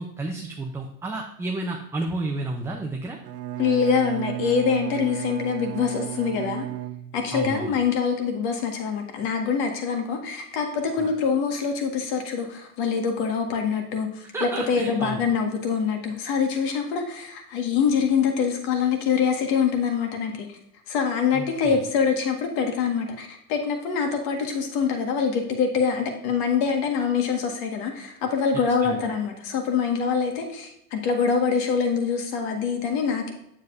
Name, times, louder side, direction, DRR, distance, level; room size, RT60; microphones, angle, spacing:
voice 1, 0.0-3.2 7.3-7.8 11.0-11.1 14.3-15.3 21.3-21.8 28.8-29.0, right 2 dB, 5° right, -1 dB, 0.6 m, -31 dB
Bowed string instrument, 3.2-7.5, right 14 dB, 90° right, 0.7 m, -33 dB
voice 2, 3.6-6.7 7.1-20.6 20.9-33.3, left 6 dB, 50° left, 4 dB, 1.8 m, -25 dB
7.5 x 7.3 x 2.6 m, 0.78 s
hypercardioid pair, 110°, 46 cm